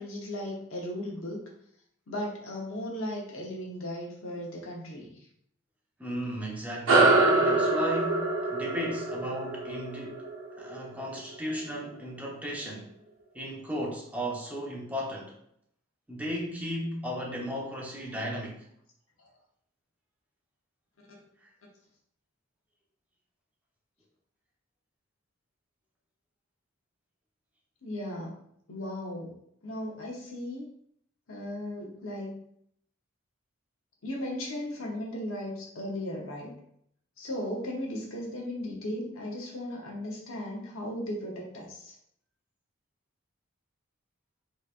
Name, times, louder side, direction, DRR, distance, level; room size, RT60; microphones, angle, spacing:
voice 1, 0.0-1.4 2.1-5.1 27.8-28.4 28.7-29.3 29.6-30.7 31.3-32.4 34.0-36.5 37.2-42.0, left 1 dB, 85° left, -2 dB, 0.9 m, -36 dB
voice 2, 6.0-10.2 10.6-12.9 13.3-15.3 16.1-18.6, equal, 10° right, -2 dB, 0.7 m, -35 dB
sound 1, 6.9-11.7, right 2 dB, 75° right, 0.8 m, -25 dB
3.5 x 3.1 x 2.4 m, 0.69 s
head